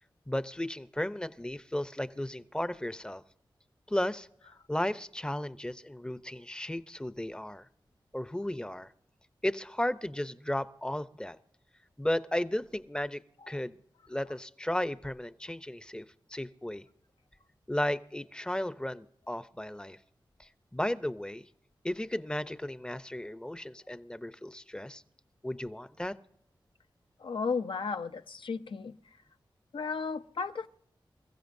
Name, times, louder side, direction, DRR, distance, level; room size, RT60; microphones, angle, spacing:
voice 1, 0.3-3.2 3.9-4.3 4.7-7.7 8.1-8.9 9.4-11.4 12.0-13.2 13.5-13.8 14.1-16.8 17.7-20.0 20.4-21.5 21.8-25.0 25.4-26.1, left 1 dB, 10° left, 13 dB, 0.6 m, -34 dB
voice 2, 27.2-29.0 29.7-30.7, left 5 dB, 75° left, 10 dB, 0.6 m, -34 dB
27.5 x 15.5 x 2.6 m, 0.69 s
wide cardioid pair, 75°, 9 cm